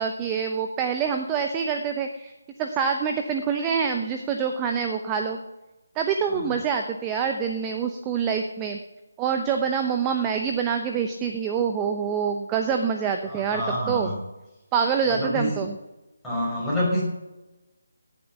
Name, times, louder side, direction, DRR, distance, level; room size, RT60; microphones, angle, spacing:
voice 1, 0.0-2.3 2.6-5.4 6.0-8.8 9.2-14.1 14.7-15.8, right 6 dB, 15° right, 5 dB, 0.8 m, -26 dB
voice 2, 13.3-14.2 15.1-15.6 16.2-17.0, equal, 5° left, -9 dB, 6.0 m, -27 dB
18.0 x 7.5 x 6.0 m, 1.0 s
figure-of-eight pair, 155°, 0 cm